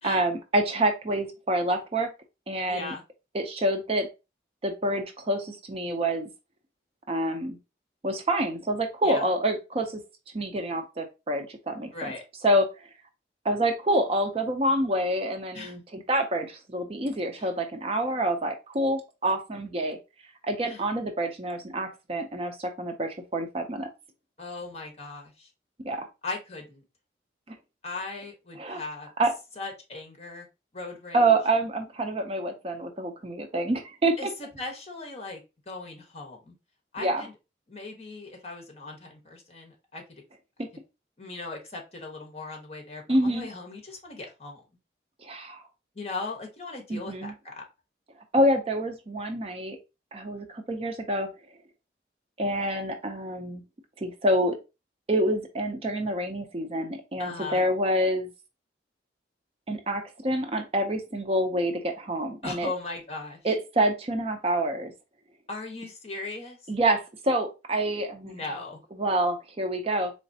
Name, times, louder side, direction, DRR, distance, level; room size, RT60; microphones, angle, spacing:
voice 1, 0.0-2.1 2.5-2.9 3.3-4.1 4.6-6.3 7.1-7.6 8.0-10.0 10.3-12.1 12.4-12.9 13.4-20.0 20.4-23.9 25.8-26.1 27.5-27.6 28.6-28.8 29.2-29.3 31.1-34.3 37.0-37.2 40.6-40.7 43.1-43.5 45.2-45.6 46.9-47.3 48.3-49.8 50.1-51.3 52.4-53.6 54.0-54.6 55.1-58.3 59.7-62.7 63.4-64.9 66.7-68.3 69.0-70.1, right 1 dB, 35° right, 6 dB, 0.5 m, -27 dB
voice 2, 2.7-3.0 9.0-9.3 11.9-12.2 15.5-15.8 17.4-17.5 20.6-20.8 24.4-25.5 26.2-26.8 27.8-29.1 29.6-30.5 30.7-31.3 34.2-35.4 35.7-36.5 36.9-37.3 37.7-40.2 41.2-44.6 45.9-47.6 57.2-57.6 62.4-63.4 65.5-66.6 68.2-68.8, left 3 dB, 35° left, 2 dB, 1.1 m, -38 dB
4.0 x 3.1 x 2.7 m, 0.27 s
head